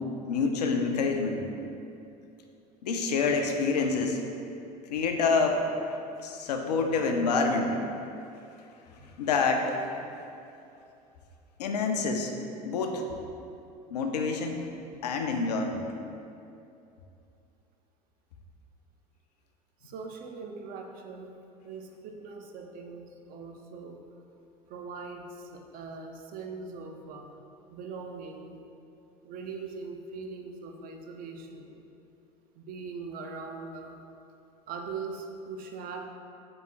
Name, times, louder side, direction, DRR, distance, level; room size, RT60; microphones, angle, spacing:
voice 1, 0.0-1.5 2.8-4.3 4.9-7.9 9.2-9.8 11.6-12.3 12.6-13.0 13.9-14.6 15.0-15.8, left 4 dB, 75° left, 4 dB, 0.4 m, -27 dB
voice 2, 19.8-21.3 21.6-24.0 24.7-27.4 27.7-28.7 29.2-31.8 32.5-34.0 34.7-36.1, right 4 dB, 45° right, 3 dB, 0.4 m, -41 dB
3.5 x 3.0 x 3.4 m, 2.7 s
figure-of-eight pair, 65°, 21 cm